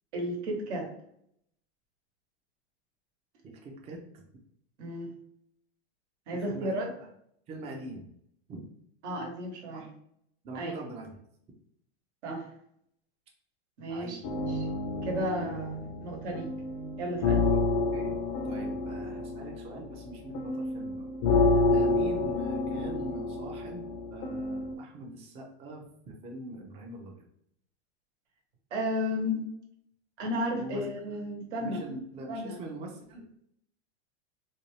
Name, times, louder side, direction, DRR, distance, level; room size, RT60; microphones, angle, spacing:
voice 1, 0.1-0.9 4.8-5.1 6.3-6.9 9.0-9.9 10.5-10.7 12.2-12.5 13.8-14.2 14.5-14.7 15.0-16.5 17.0-17.5 28.7-29.4 30.2-31.8 32.3-32.6, equal, 80° right, 1 dB, 1.1 m, -33 dB
voice 2, 3.4-4.2 6.3-6.8 7.5-8.1 8.5-8.6 9.7-9.9 10.4-11.2 13.9-14.2 17.5-17.6 17.9-18.2 18.4-27.3 30.5-30.9 31.6-33.3, right 2 dB, 20° right, 1 dB, 0.4 m, -43 dB
sound 1, 14.2-24.7, left 3 dB, 45° left, 0.5 m, -29 dB
2.6 x 2.2 x 3.1 m, 0.70 s
supercardioid pair, 135°, 34 cm